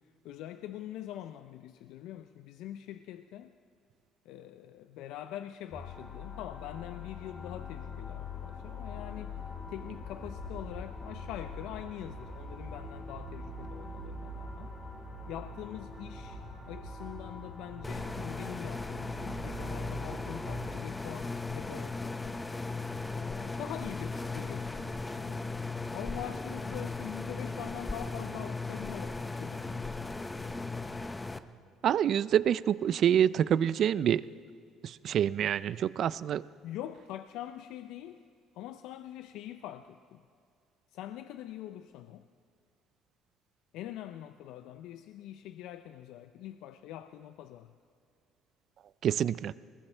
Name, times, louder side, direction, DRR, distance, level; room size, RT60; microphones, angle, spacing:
voice 1, 0.2-3.5 4.3-9.3 9.7-14.7 15.3-22.4 23.1-25.4 25.9-30.1 36.6-38.2 38.6-40.2 40.9-42.3 43.7-47.7, left 12 dB, 80° left, 10 dB, 0.4 m, -44 dB
sound 1, 5.7-20.6, left 2 dB, 30° left, 4.1 m, -43 dB
sound 2, 17.8-31.4, left 3 dB, 15° left, 0.6 m, -37 dB
voice 2, 31.8-34.2 34.8-36.4 49.0-49.5, right 9 dB, 55° right, 18 dB, 0.3 m, -27 dB
21.0 x 19.5 x 3.4 m, 2.3 s
cardioid pair, 115°, 0 cm